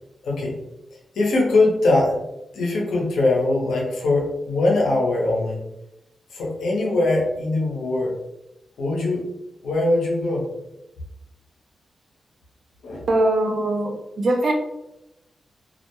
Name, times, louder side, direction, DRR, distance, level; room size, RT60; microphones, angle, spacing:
voice 1, 0.2-0.6 0.9-2.2 2.5-5.6 6.3-8.1 8.8-9.2 9.6-10.5 12.8-13.0, left 2 dB, 85° left, -2 dB, 0.6 m, -21 dB
voice 2, 13.1-14.5, right 1 dB, 65° right, 2 dB, 0.5 m, -21 dB
2.3 x 2.1 x 2.9 m, 0.89 s
cardioid pair, 50°, 0 cm